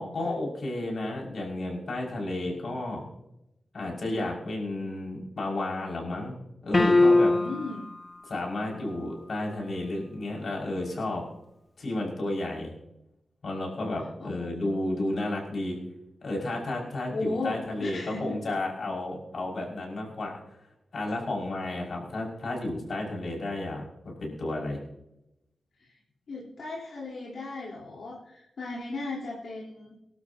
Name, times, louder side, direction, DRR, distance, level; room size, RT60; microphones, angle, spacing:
voice 1, 0.0-3.0 3.7-6.4 6.6-7.4 8.3-11.2 11.8-12.7 13.4-15.8 16.2-20.4 20.9-24.8, left 2 dB, 55° left, -2 dB, 5.7 m, -32 dB
sound 1, 6.7-7.8, left 2 dB, 25° left, 0.7 m, -20 dB
voice 2, 7.3-7.9 14.2-15.4 17.1-18.4 25.8-26.0 26.3-29.9, left 2 dB, 75° left, -5 dB, 3.9 m, -36 dB
25.0 x 12.0 x 2.8 m, 0.86 s
wide cardioid pair, 170°, 0 cm